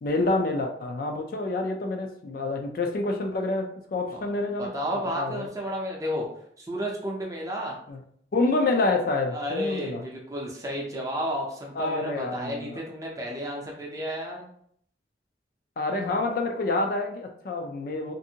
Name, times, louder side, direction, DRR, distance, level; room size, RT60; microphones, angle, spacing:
voice 1, 0.0-5.5 7.9-8.0 8.3-10.0 11.8-12.8 15.8-18.1, left 2 dB, 50° left, 3 dB, 0.4 m, -28 dB
voice 2, 4.1-6.2 6.6-7.8 9.3-14.5 16.0-16.3, equal, 20° right, -1 dB, 0.5 m, -32 dB
2.6 x 2.5 x 2.7 m, 0.66 s
head